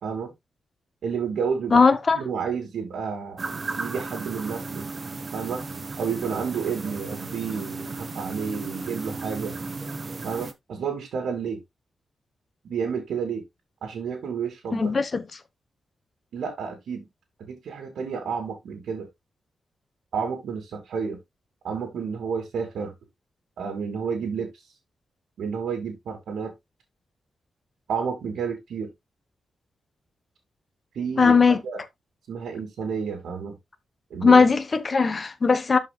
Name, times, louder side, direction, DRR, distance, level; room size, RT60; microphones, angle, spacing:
voice 1, 0.0-0.3 1.0-3.4 3.7-4.9 5.3-5.6 6.0-9.5 10.2-11.6 12.6-13.4 13.8-14.9 16.3-17.1 17.5-19.1 20.1-21.2 21.6-22.9 23.6-24.5 25.4-26.5 27.9-28.9 30.9-31.3 31.6-31.8 32.3-33.6 34.1-34.5, right 6 dB, 90° right, 2.2 m, -30 dB
voice 2, 1.7-2.2 14.7-15.2 31.2-31.6 34.2-35.8, left 4 dB, 35° left, 1.0 m, -18 dB
sound 1, 3.4-10.5, right 3 dB, 35° right, 1.0 m, -35 dB
12.5 x 5.2 x 2.3 m
wide cardioid pair, 125°, 0 cm